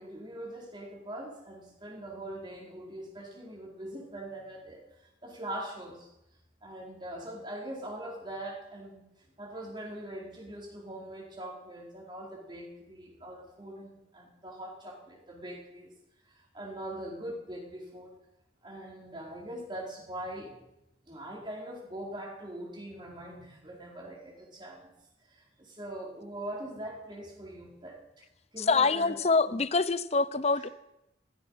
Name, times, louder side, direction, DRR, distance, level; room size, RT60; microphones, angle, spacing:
voice 1, 0.0-4.8 5.2-6.1 6.6-9.0 9.4-15.9 16.3-18.1 18.6-20.5 21.1-24.9 25.3-28.2 28.5-29.2 29.5-29.6 30.5-30.7, right 1 dB, 25° right, 4.4 m, -42 dB
voice 2, 28.6-30.7, left 4 dB, 35° left, 0.6 m, -25 dB
15.5 x 14.5 x 5.6 m
head